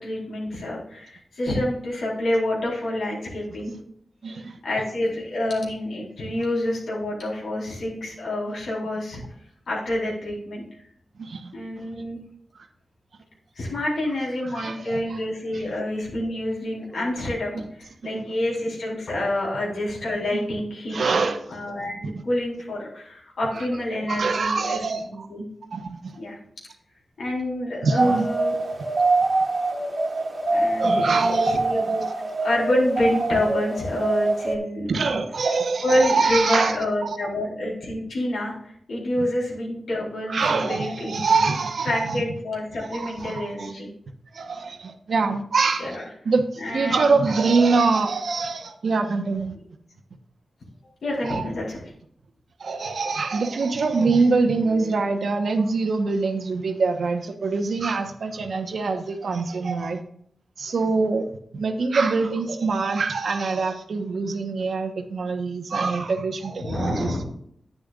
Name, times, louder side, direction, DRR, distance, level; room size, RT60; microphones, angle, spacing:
voice 1, 0.0-3.7 4.6-9.2 9.7-10.6 11.5-12.2 13.6-24.8 25.0-25.4 26.2-26.4 27.2-28.5 30.5-32.1 32.4-34.9 35.8-41.4 41.9-43.9 45.8-46.0 46.6-47.2 51.0-51.8 66.6-67.2, left 1 dB, 90° left, -4 dB, 4.0 m, -27 dB
voice 2, 4.2-4.6 11.2-11.8 14.4-15.2 15.5-15.6 18.0-18.4 20.3-20.5 20.9-21.4 23.5-23.7 24.1-25.3 25.7-26.2 27.8-28.3 30.8-31.6 31.9-32.0 34.9-36.8 37.0-37.3 39.2-39.3 40.3-42.2 42.9-43.7 44.3-46.0 46.2-49.5 51.2-51.5 52.6-60.0 60.6-61.3 61.5-67.2, right 4 dB, 70° right, 6 dB, 1.1 m, -24 dB
sound 1, 28.0-34.6, right 2 dB, 40° right, 1.8 m, -24 dB
10.5 x 9.6 x 2.5 m, 0.66 s
wide cardioid pair, 105°, 0 cm